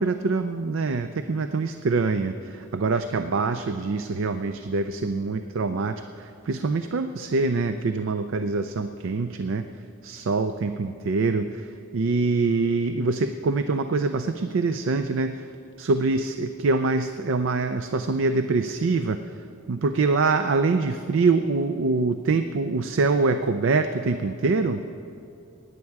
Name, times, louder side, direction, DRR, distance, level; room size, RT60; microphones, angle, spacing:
voice 1, 0.0-9.6 10.0-15.5 15.8-19.2 19.7-24.8, right 3 dB, 65° right, 9 dB, 0.4 m, -24 dB
17.0 x 9.8 x 4.7 m, 2.6 s
head